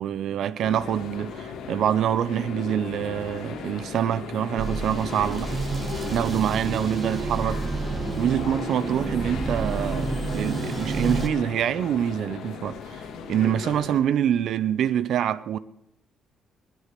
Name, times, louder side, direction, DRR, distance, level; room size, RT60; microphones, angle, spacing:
voice 1, 0.0-5.6 6.1-7.6 8.2-13.0 13.3-15.6, right 10 dB, 70° right, 0.6 m, -25 dB
sound 1, 0.6-14.0, left 6 dB, 90° left, 2.4 m, -37 dB
sound 2, 4.6-11.3, right 3 dB, 40° right, 1.8 m, -29 dB
20.5 x 8.3 x 6.8 m
cardioid pair, 90°, 0 cm